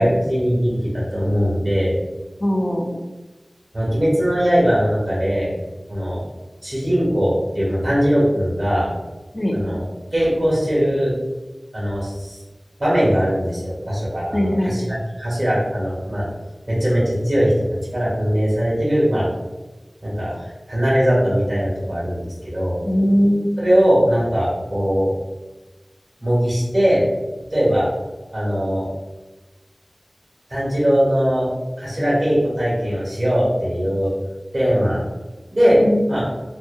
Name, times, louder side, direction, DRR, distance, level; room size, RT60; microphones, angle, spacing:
voice 1, 0.0-1.9 3.7-5.5 5.9-6.2 6.6-8.9 9.5-9.8 10.1-11.1 11.7-12.4 12.8-16.3 16.7-17.5 17.9-19.3 20.0-22.8 23.6-25.1 26.2-27.0 27.5-27.9 28.3-28.9 30.5-31.5 31.8-34.1 34.5-35.0 35.5-35.8 36.1-36.2, equal, 55° right, -7 dB, 1.3 m, -20 dB
voice 2, 2.4-2.9 9.3-9.6 14.3-14.8 22.8-23.5 35.8-36.0, equal, 40° left, -1 dB, 0.4 m, -20 dB
2.7 x 2.2 x 2.6 m, 1.1 s
wide cardioid pair, 40°, 0 cm